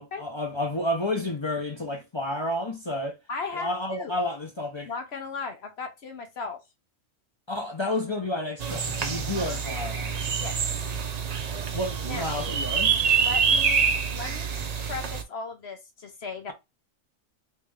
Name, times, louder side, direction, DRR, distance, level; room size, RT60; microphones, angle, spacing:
voice 1, 0.0-3.2 3.5-4.9 7.5-10.3 11.7-13.0, left 1 dB, 30° left, 0.5 m, -30 dB
voice 2, 3.3-4.2 4.9-6.6 10.4-10.6 11.7-11.8 12.0-12.4 13.1-14.5 14.8-16.5, left 4 dB, 55° left, 0.9 m, -36 dB
sound 1, 8.6-15.2, right 6 dB, 75° right, 0.3 m, -26 dB
3.3 x 3.1 x 3.5 m
omnidirectional pair, 1.5 m